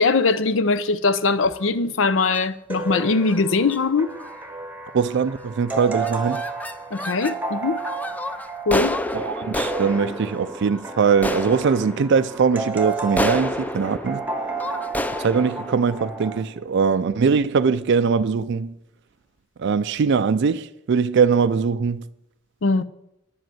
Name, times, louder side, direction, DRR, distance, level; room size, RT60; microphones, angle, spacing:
voice 1, 0.0-4.2 6.9-7.8 8.7-9.0 22.6-22.8, left 4 dB, 65° left, 0.6 m, -21 dB
sound 1, 1.3-1.7 2.2-2.5 3.2-3.4 3.7-3.8 4.1-4.5 5.1-5.4 5.7-7.4 7.8-16.9, left 1 dB, 10° left, 0.5 m, -31 dB
sound 2, 2.7-16.4, right 4 dB, 10° right, 1.0 m, -32 dB
voice 2, 4.9-6.4 9.1-14.2 15.2-18.7 19.6-22.0, right 5 dB, 60° right, 0.4 m, -21 dB
10.0 x 7.8 x 7.7 m
head